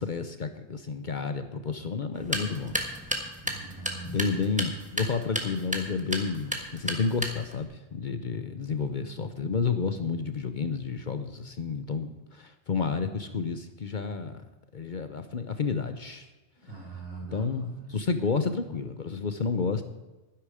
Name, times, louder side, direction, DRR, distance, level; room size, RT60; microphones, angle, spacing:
voice 1, 0.0-2.8 4.1-14.4 14.7-16.3 17.3-19.8, left 5 dB, 50° left, 9 dB, 0.8 m, -30 dB
sound 1, 2.1-7.6, right 1 dB, 5° right, 1.4 m, -34 dB
voice 2, 3.4-4.4 16.6-18.0, right 3 dB, 70° right, -4 dB, 4.8 m, -42 dB
12.0 x 10.5 x 5.0 m, 1.1 s
omnidirectional pair, 1.2 m